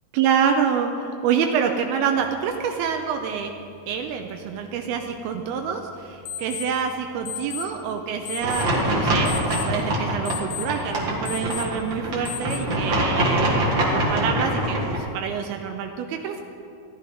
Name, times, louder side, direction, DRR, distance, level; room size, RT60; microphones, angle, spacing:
voice 1, 0.1-3.5 3.9-16.4, right 7 dB, 85° right, 4 dB, 2.6 m, -26 dB
sound 1, 2.2-12.6, left 8 dB, 75° left, 2.1 m, -39 dB
sound 2, 8.4-15.0, right 1 dB, 45° right, 1.7 m, -24 dB
14.5 x 11.5 x 5.2 m, 2.5 s
omnidirectional pair, 4.5 m